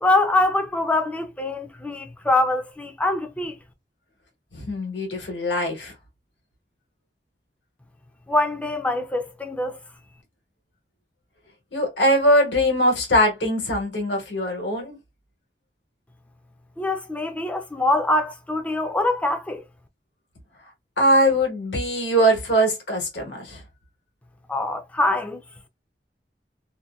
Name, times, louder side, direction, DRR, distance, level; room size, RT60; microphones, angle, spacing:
voice 1, 0.0-3.6 8.3-9.8 16.8-19.6 24.5-25.4, left 2 dB, 10° left, 0.4 m, -24 dB
voice 2, 4.5-5.9 11.7-15.0 21.0-23.6, equal, 85° left, 1.2 m, -21 dB
2.7 x 2.1 x 2.3 m
head